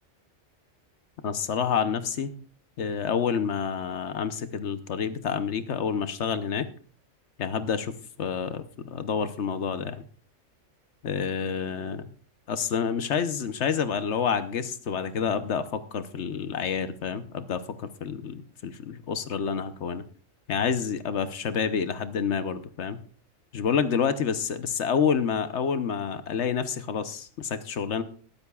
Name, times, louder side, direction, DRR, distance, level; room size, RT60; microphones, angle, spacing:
voice 1, 1.2-2.3 2.8-6.7 7.4-10.0 11.0-12.1 12.5-20.0 20.5-23.0 23.5-28.0, left 6 dB, 70° left, 11 dB, 1.2 m, -28 dB
20.5 x 12.5 x 2.4 m, 0.42 s
omnidirectional pair, 1.2 m